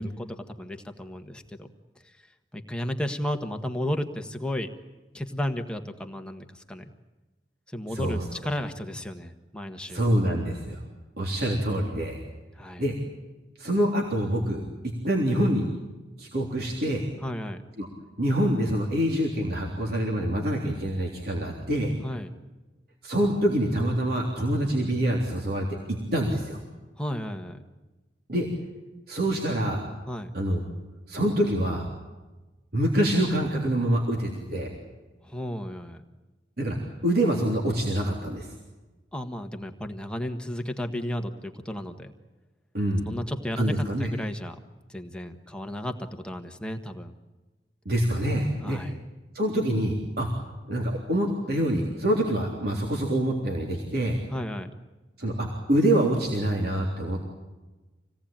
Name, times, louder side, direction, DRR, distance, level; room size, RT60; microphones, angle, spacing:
voice 1, 0.2-1.7 2.5-4.7 5.1-6.9 7.7-10.0 12.5-12.8 17.2-17.6 22.0-22.3 27.0-27.6 30.1-30.3 35.2-36.0 39.1-42.1 43.1-44.6 44.9-47.1 48.6-48.9 54.3-54.7, left 1 dB, 5° left, 4 dB, 1.4 m, -33 dB
voice 2, 7.9-8.2 9.9-10.8 11.2-12.2 12.8-12.9 13.6-14.6 15.0-15.7 16.2-17.1 17.8-17.9 18.2-21.9 23.0-25.7 26.1-26.6 28.3-28.5 29.1-29.9 30.3-30.6 31.1-31.8 32.7-34.7 36.6-36.8 37.0-38.5 42.7-43.1 43.6-44.1 47.9-48.8 49.3-50.3 50.7-54.2 55.2-57.2, right 1 dB, 60° right, -1 dB, 3.5 m, -25 dB
26.5 x 18.0 x 8.9 m, 1.2 s
head